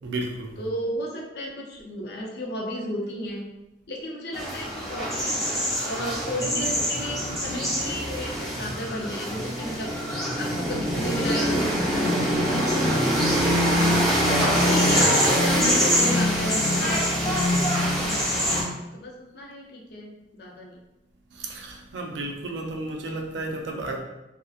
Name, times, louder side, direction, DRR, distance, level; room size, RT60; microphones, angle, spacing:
voice 1, 0.0-0.6 13.9-14.1 21.3-24.0, right 2 dB, 70° right, 2 dB, 0.4 m, -33 dB
voice 2, 0.6-3.5 3.9-5.4 5.8-9.9 10.4-13.6 14.2-20.8, left 1 dB, 60° left, -1 dB, 0.5 m, -33 dB
sound 1, 4.3-18.6, equal, ahead, 0.6 m, -24 dB
2.7 x 2.0 x 2.3 m, 0.95 s
head